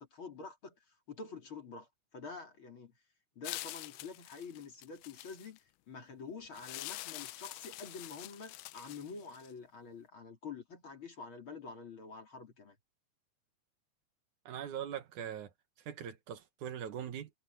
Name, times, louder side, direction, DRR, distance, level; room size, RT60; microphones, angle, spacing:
voice 1, 0.0-2.9 3.4-5.6 5.9-12.8, left 4 dB, 40° left, 3.7 m, -47 dB
sound 1, 3.4-5.6 6.5-9.5, left 19 dB, 80° left, 1.9 m, -46 dB
voice 2, 14.5-15.5 15.9-17.3, right 9 dB, 65° right, 2.8 m, -41 dB
omnidirectional pair, 4.0 m